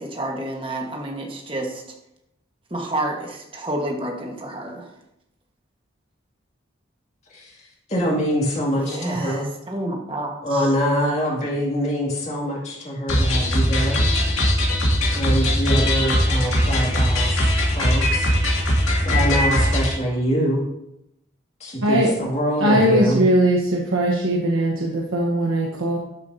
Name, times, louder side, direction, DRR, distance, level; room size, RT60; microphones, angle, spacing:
voice 1, 0.0-1.8 2.7-4.9 8.8-10.7, right 1 dB, 25° right, 0 dB, 1.4 m, -29 dB
voice 2, 7.9-9.5 10.4-14.0 15.1-18.3 19.0-20.6 21.6-23.2, equal, 35° left, -3 dB, 2.2 m, -24 dB
sound 1, 13.1-19.9, equal, 85° left, 2.2 m, -20 dB
voice 3, 22.6-26.0, right 1 dB, 90° right, -2 dB, 1.1 m, -20 dB
12.5 x 6.8 x 2.7 m, 0.84 s
head